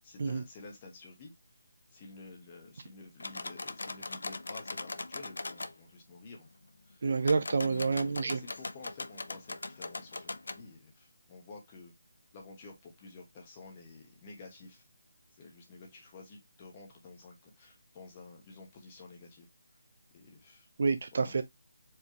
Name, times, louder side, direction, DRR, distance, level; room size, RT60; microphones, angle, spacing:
voice 1, 0.0-1.3 1.9-6.5 6.9-7.0 7.6-11.9 12.3-14.8 15.4-19.5 20.1-20.7 21.1-21.3, left 3 dB, 20° left, 1.1 m, -51 dB
sound 1, 3.2-5.7 7.2-10.6, left 3 dB, 85° left, 0.6 m, -40 dB
voice 2, 7.0-8.4 20.8-21.4, right 4 dB, 40° right, 0.6 m, -28 dB
4.7 x 3.4 x 2.9 m
hypercardioid pair, 175°, 0 cm